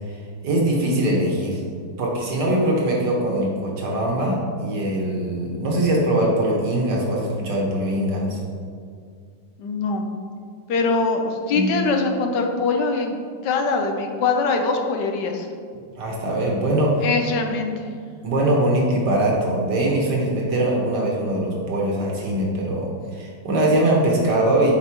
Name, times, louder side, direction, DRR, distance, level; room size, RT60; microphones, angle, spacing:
voice 1, 0.4-1.6 2.0-8.4 11.5-11.7 16.0-17.1 18.2-22.9 23.1-24.7, right 1 dB, 75° right, -2 dB, 1.9 m, -22 dB
voice 2, 9.6-10.1 10.7-13.1 13.4-15.5 17.0-17.9, left 4 dB, 85° left, 4 dB, 1.4 m, -22 dB
8.3 x 5.5 x 3.0 m, 2.1 s
omnidirectional pair, 1.8 m